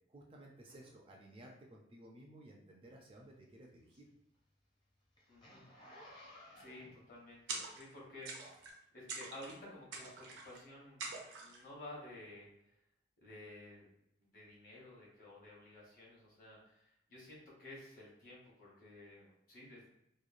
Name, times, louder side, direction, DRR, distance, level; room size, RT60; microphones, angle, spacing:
voice 1, 0.1-4.1, right 1 dB, 30° right, 0 dB, 0.3 m, -56 dB
Zipper (clothing), 3.1-8.0 8.6-8.7, left 1 dB, 25° left, 0.6 m, -58 dB
voice 2, 5.3-5.7 6.5-8.6 8.9-12.8 13.2-13.9 14.2-19.9, left 1 dB, 50° left, -5 dB, 1.0 m, -53 dB
sound 1, 7.5-8.0 8.2-8.8 9.1-9.6 9.9-10.6 11.0-11.6, right 4 dB, 85° right, 0.6 m, -45 dB
2.9 x 2.2 x 2.4 m, 0.80 s
head